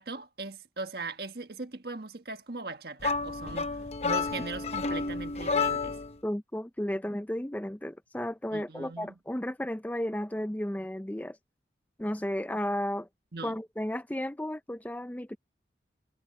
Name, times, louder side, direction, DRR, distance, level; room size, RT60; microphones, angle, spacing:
voice 1, 0.0-6.0 8.5-9.1 13.3-13.5, right 3 dB, 60° right, 1.6 m, -39 dB
sound 1, 3.0-6.2, left 4 dB, 35° left, 0.8 m, -30 dB
voice 2, 6.2-11.4 12.0-13.1 13.4-15.4, left 1 dB, 10° left, 0.5 m, -33 dB
head